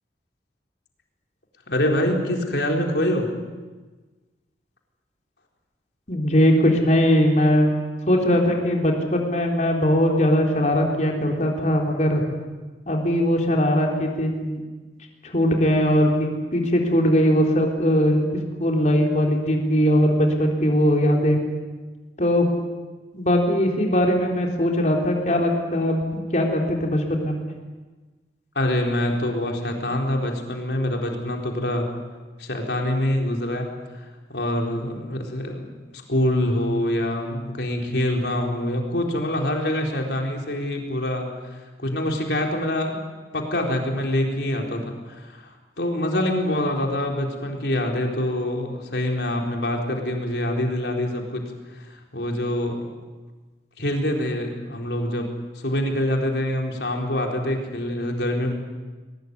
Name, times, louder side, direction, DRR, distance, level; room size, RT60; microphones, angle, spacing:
voice 1, 1.7-3.3 28.5-31.9 32.4-35.7 35.9-43.0 43.3-51.4 51.7-52.9 53.8-58.5, left 1 dB, 75° left, 1 dB, 4.3 m, -25 dB
voice 2, 6.1-7.7 8.1-12.2 12.9-14.6 15.2-18.2 18.6-21.4 22.2-22.5 23.1-26.0 26.3-27.3, equal, 45° left, 1 dB, 3.8 m, -20 dB
22.0 x 20.5 x 9.8 m, 1.3 s
head